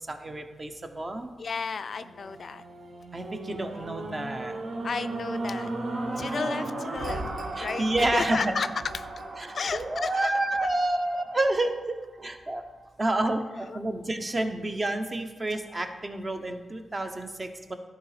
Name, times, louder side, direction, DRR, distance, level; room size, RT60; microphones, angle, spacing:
voice 1, 0.1-1.3 3.1-4.6 7.6-8.5 9.4-12.6 13.0-17.8, right 2 dB, 30° right, 6 dB, 0.8 m, -29 dB
voice 2, 1.4-2.6 3.8-3.9 4.8-5.7 6.2-7.3 7.6-8.7 8.9-9.1 9.5-10.7 13.7-13.8, left 5 dB, 60° left, 12 dB, 0.3 m, -33 dB
sound 1, 1.9-12.2 12.8-12.9, right 2 dB, 65° right, 1.2 m, -36 dB
11.5 x 3.9 x 4.9 m, 1.2 s
cardioid pair, 70°, 0 cm